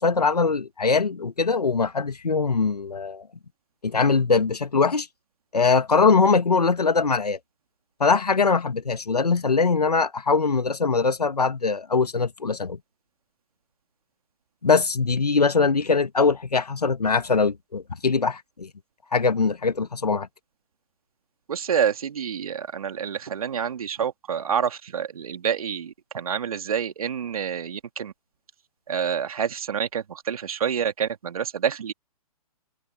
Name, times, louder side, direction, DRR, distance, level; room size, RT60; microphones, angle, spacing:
voice 1, 0.0-3.2 3.8-5.1 5.5-7.4 8.0-12.8 14.6-18.7 19.1-20.3, left 4 dB, 80° left, 1.9 m, -22 dB
voice 2, 21.5-28.1 28.9-31.9, right 8 dB, 65° right, 2.5 m, -28 dB
figure-of-eight pair, 120°, 20 cm